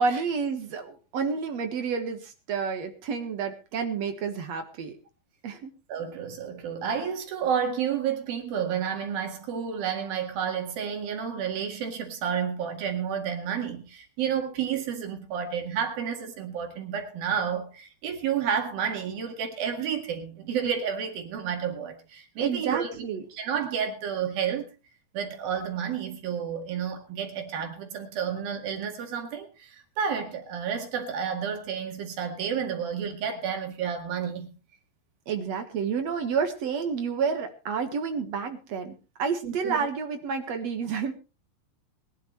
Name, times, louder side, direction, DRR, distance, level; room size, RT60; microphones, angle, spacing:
voice 1, 0.0-5.0 5.4-5.7 22.4-23.2 35.3-38.9 39.2-41.1, right 5 dB, 55° right, 2.2 m, -29 dB
voice 2, 5.9-23.1 23.3-24.7 25.1-34.5 39.4-39.8, right 7 dB, 75° right, 3.7 m, -30 dB
22.0 x 12.0 x 3.2 m
omnidirectional pair, 4.3 m